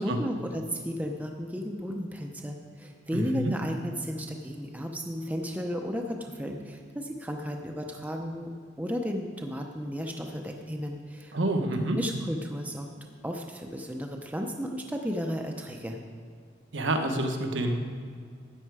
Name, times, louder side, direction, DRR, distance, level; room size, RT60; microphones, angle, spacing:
voice 1, 0.0-8.5 8.8-11.4 11.9-12.9 13.2-16.0, equal, 10° right, 2 dB, 0.7 m, -34 dB
voice 2, 3.1-3.5 11.3-12.0 16.7-17.8, right 1 dB, 75° right, 5 dB, 1.2 m, -28 dB
13.0 x 9.2 x 4.8 m, 2.2 s
head